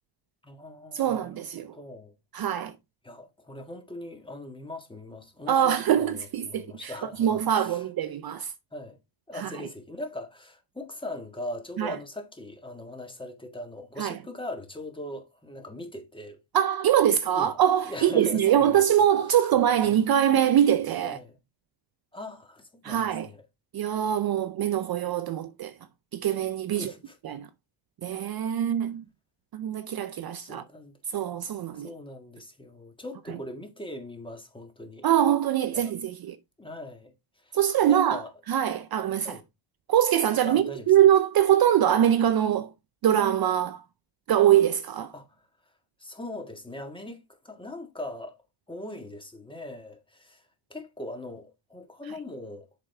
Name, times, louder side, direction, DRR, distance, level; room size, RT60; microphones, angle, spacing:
voice 1, 0.4-1.5 1.7-2.1 3.0-7.8 8.7-9.0 9.3-16.4 17.3-17.6 17.8-18.8 19.3-19.5 21.0-21.4 22.1-23.4 26.7-27.2 30.4-30.9 31.7-35.1 35.7-35.9 36.6-37.1 37.4-37.6 37.9-38.3 39.2-39.4 40.4-40.9 45.1-45.3 46.0-48.4 48.7-50.4 50.7-52.7, left 1 dB, 10° left, 1.7 m, -40 dB
voice 2, 0.9-1.7 2.3-2.7 5.5-8.5 9.3-9.5 11.8-12.0 14.0-14.2 16.5-21.2 22.8-23.3 23.7-25.7 26.1-26.9 27.2-27.5 28.0-29.0 29.5-30.6 31.1-31.9 35.0-36.4 37.5-38.2 38.5-39.4 39.9-42.7 43.0-43.8 44.3-45.1 52.1-52.2, right 10 dB, 45° right, 0.6 m, -23 dB
7.2 x 5.2 x 3.4 m
cardioid pair, 115°, 50 cm